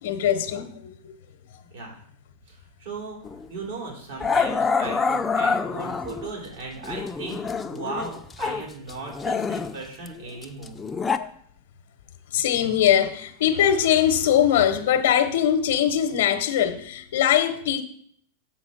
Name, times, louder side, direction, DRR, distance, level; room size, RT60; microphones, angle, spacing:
voice 1, 0.0-1.2 11.2-11.3 12.3-17.8, left 10 dB, 75° left, 0.8 m, -22 dB
voice 2, 2.5-3.2 3.5-10.8, right 3 dB, 75° right, 3.3 m, -37 dB
Growling, 3.3-3.5 4.2-6.3 6.8-8.6 8.9-11.2, left 5 dB, 15° left, 0.4 m, -26 dB
7.1 x 4.1 x 6.4 m
supercardioid pair, 140°, 0 cm